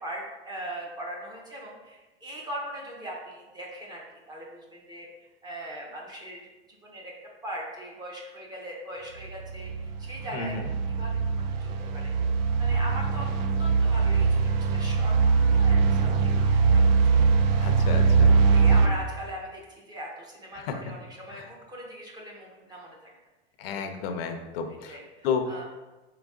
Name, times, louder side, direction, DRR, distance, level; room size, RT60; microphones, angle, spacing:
voice 1, 0.0-6.5 6.8-7.1 7.4-10.5 11.0-12.1 12.6-13.3 13.6-17.3 17.9-18.1 18.5-23.1 24.9-25.7, right 1 dB, 15° right, -2 dB, 0.6 m, -40 dB
sound 1, 9.2-18.9, right 5 dB, 60° right, 0.5 m, -22 dB
voice 2, 10.3-10.6 17.6-18.3 20.5-20.6 21.3-21.5 23.6-25.0 25.2-25.4, left 6 dB, 60° left, 6 dB, 0.6 m, -32 dB
3.9 x 3.0 x 3.6 m, 1.1 s
supercardioid pair, 140°, 33 cm